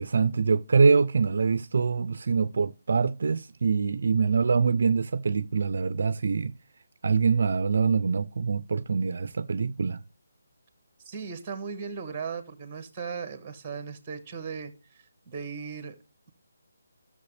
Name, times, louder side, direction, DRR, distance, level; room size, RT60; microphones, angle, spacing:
voice 1, 0.0-6.5 7.0-10.0, right 5 dB, 55° right, 0.4 m, -24 dB
voice 2, 11.0-15.9, right 5 dB, 15° right, 1.3 m, -37 dB
13.5 x 7.0 x 3.3 m
hypercardioid pair, 170°, 0 cm